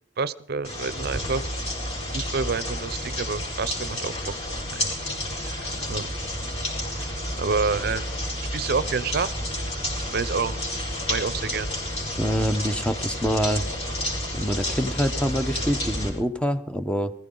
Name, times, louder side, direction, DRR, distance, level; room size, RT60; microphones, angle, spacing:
voice 1, 0.2-1.4 2.1-4.2 4.7-5.0 5.4-6.1 7.0-8.1 8.5-9.3 10.1-10.6 11.1-11.7, right 4 dB, 60° right, 17 dB, 0.5 m, -28 dB
sound 1, 0.6-16.1, left 1 dB, 35° left, 4.5 m, -30 dB
voice 2, 12.2-13.6 14.3-17.1, equal, 5° left, 9 dB, 0.7 m, -25 dB
20.0 x 14.5 x 3.8 m, 0.70 s
head